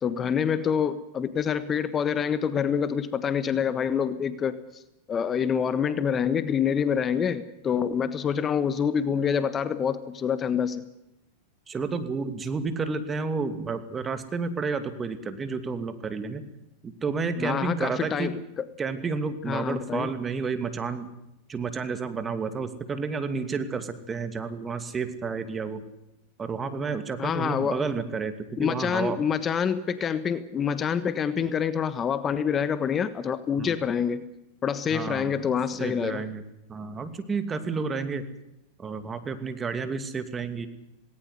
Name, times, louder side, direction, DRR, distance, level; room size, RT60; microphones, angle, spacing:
voice 1, 0.0-4.8 5.1-10.8 17.4-18.7 19.5-20.1 27.2-27.8 28.6-34.2 34.6-36.2, left 7 dB, 30° left, 13 dB, 1.3 m, -26 dB
voice 2, 11.7-16.4 16.8-18.3 18.8-21.1 21.5-25.8 26.4-29.2 33.6-33.8 34.9-35.3 35.8-36.4 36.7-38.2 38.8-40.7, right 4 dB, 20° right, 9 dB, 2.6 m, -31 dB
18.5 x 18.5 x 9.6 m, 0.88 s
hypercardioid pair, 100°, 0 cm